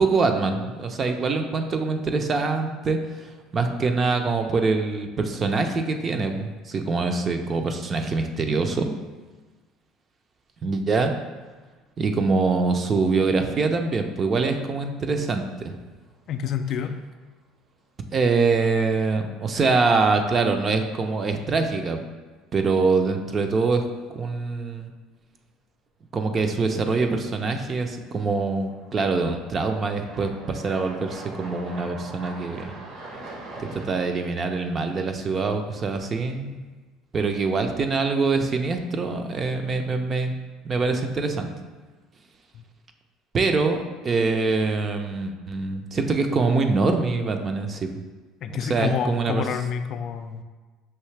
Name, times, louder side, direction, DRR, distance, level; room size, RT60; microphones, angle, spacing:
voice 1, 0.0-8.9 10.6-11.1 12.0-15.8 18.1-22.0 22.5-23.8 24.1-24.9 26.1-32.7 33.6-36.6 37.1-40.4 40.6-41.5 43.3-47.9 48.5-49.5, right 4 dB, 35° right, 5 dB, 0.5 m, -24 dB
sound 1, 16.0-16.7 17.0-17.1 20.0-20.1 21.5-21.7 22.0-22.1 27.5-27.6 28.3-34.0, right 2 dB, 60° right, 0.9 m, -42 dB
voice 2, 16.3-17.0 48.4-50.4, left 8 dB, 55° left, 8 dB, 0.3 m, -28 dB
5.6 x 2.7 x 3.2 m, 1.4 s
supercardioid pair, 90°, 0 cm